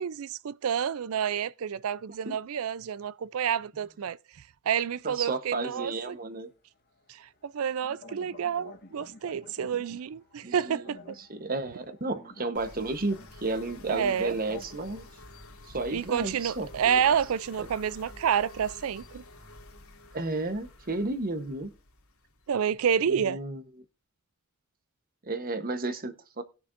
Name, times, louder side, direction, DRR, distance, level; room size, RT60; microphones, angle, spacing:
voice 1, 0.0-4.2 4.7-6.2 7.1-11.2 13.9-14.3 15.9-19.2 22.5-23.4, right 8 dB, 75° right, 0.4 m, -29 dB
voice 2, 5.0-6.5 10.4-10.9 11.3-15.1 15.7-17.1 17.6-17.7 20.1-21.7 23.1-23.6 25.2-26.4, right 2 dB, 40° right, 1.0 m, -32 dB
sound 1, 7.2-14.8, left 3 dB, 45° left, 1.4 m, -50 dB
sound 2, 12.5-23.2, left 2 dB, 85° left, 2.8 m, -49 dB
19.5 x 6.7 x 2.6 m
head